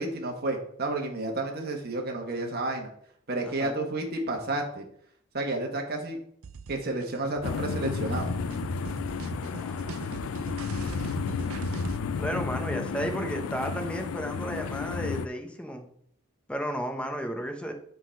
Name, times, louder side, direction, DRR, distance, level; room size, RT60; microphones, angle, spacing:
voice 1, 0.0-2.9 3.3-4.8 5.3-6.2 6.7-8.3, right 2 dB, 50° right, 1 dB, 1.3 m, -31 dB
voice 2, 3.4-3.7 9.4-9.9 10.2-10.5 12.1-15.9 16.5-17.7, equal, 5° left, 4 dB, 0.9 m, -34 dB
sound 1, 6.4-12.0, right 5 dB, 85° right, 0.5 m, -41 dB
sound 2, 7.4-15.3, left 5 dB, 85° left, 0.4 m, -32 dB
7.8 x 3.9 x 5.7 m, 0.65 s
head